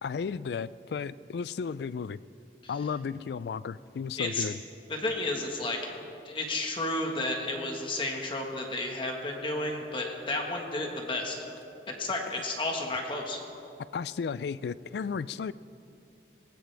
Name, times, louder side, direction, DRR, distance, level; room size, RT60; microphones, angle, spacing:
voice 1, 0.0-2.2 2.7-4.6 13.9-15.5, left 6 dB, 65° left, 18 dB, 0.3 m, -34 dB
voice 2, 4.2-4.5 4.9-5.8 6.2-11.4 11.9-13.4, left 2 dB, 30° left, 1 dB, 1.5 m, -32 dB
19.0 x 18.5 x 3.4 m, 2.7 s
head